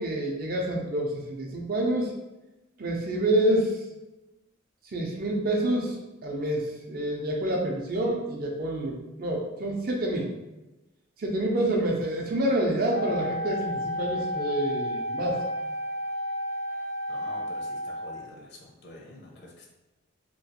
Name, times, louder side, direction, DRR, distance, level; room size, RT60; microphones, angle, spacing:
voice 1, 0.0-2.1 2.8-3.8 4.9-6.0 6.2-10.3 11.2-15.4, right 1 dB, 50° right, -1 dB, 0.6 m, -27 dB
Wind instrument woodwind instrument, 12.9-18.4, left 1 dB, 85° left, 1.1 m, -32 dB
voice 2, 17.1-19.7, left 2 dB, 60° left, -1 dB, 0.6 m, -47 dB
3.0 x 2.3 x 2.8 m, 1.0 s
head